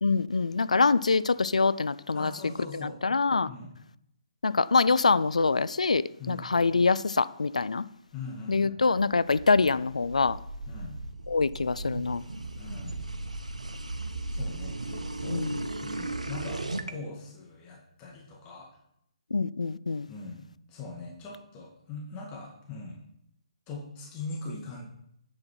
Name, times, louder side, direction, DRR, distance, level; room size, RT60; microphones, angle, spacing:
voice 1, 0.0-2.3 3.0-3.5 4.4-7.8 8.5-10.4 11.3-12.2 15.3-15.5 19.3-20.1, left 4 dB, 75° left, 0.5 m, -25 dB
voice 2, 2.1-3.0 3.5-3.7 6.2-6.5 8.1-8.8 10.7-11.0 12.6-13.0 14.3-15.5 15.8-18.7 20.1-23.0 23.7-24.8, left 3 dB, 20° left, 2.2 m, -41 dB
sound 1, 8.9-16.9, right 2 dB, 80° right, 1.3 m, -36 dB
9.7 x 8.6 x 4.7 m
figure-of-eight pair, 135°, 4 cm